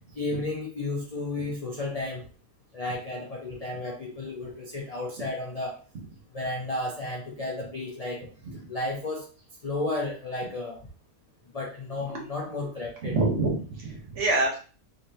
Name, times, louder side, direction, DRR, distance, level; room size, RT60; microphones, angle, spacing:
voice 1, 0.2-2.2 2.7-5.8 6.3-8.3 8.7-9.2 9.6-10.8 11.5-13.2, left 2 dB, 50° left, -1 dB, 0.4 m, -33 dB
voice 2, 13.0-14.6, right 2 dB, 50° right, -1 dB, 1.3 m, -26 dB
3.8 x 3.2 x 2.7 m, 0.39 s
omnidirectional pair, 1.7 m